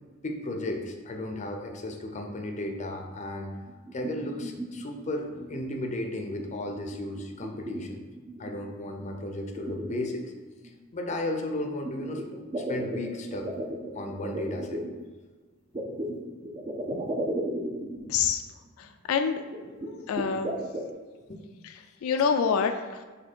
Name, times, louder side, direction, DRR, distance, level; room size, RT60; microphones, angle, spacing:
voice 1, 0.2-3.5 3.9-8.0 8.4-10.3 10.9-13.5 13.9-14.8 16.9-17.0 21.3-21.4, left 1 dB, 35° left, 3 dB, 0.5 m, -34 dB
sound 1, 3.7-4.9 5.3-5.7 6.1-6.6 6.9-8.5 9.0-9.1 9.4-10.7 11.8-14.9 15.7-18.2 18.5-18.6 18.8-18.9 19.5-20.9, right 1 dB, 25° right, 0.4 m, -35 dB
voice 2, 18.1-18.4 19.1-19.4 19.9-20.5 22.0-23.0, left 6 dB, 90° left, 7 dB, 0.3 m, -26 dB
4.1 x 2.7 x 4.4 m, 1.4 s
head